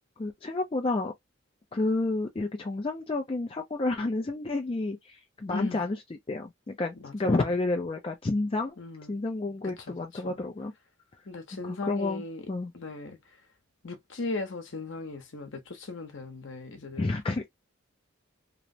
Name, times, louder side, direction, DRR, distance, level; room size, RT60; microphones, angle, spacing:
voice 1, 0.2-1.1 1.7-6.0 6.3-8.8 9.1-10.7 11.5-12.7 17.0-17.4, left 2 dB, 25° left, 0.4 m, -30 dB
voice 2, 5.5-5.8 7.0-7.5 8.8-9.2 9.9-10.4 11.3-12.4 12.7-13.2 13.8-17.1, left 3 dB, 60° left, 0.9 m, -37 dB
3.0 x 2.1 x 2.6 m
head